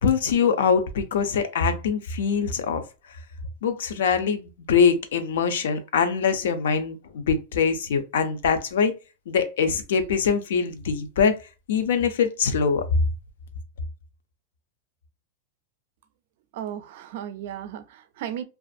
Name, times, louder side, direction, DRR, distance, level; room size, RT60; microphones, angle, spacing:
voice 1, 0.0-2.8 3.6-8.9 9.3-11.3 11.7-12.8, left 6 dB, 85° left, 0.5 m, -23 dB
voice 2, 16.5-18.4, right 10 dB, 50° right, 0.4 m, -35 dB
2.5 x 2.4 x 2.3 m
supercardioid pair, 175°, 0 cm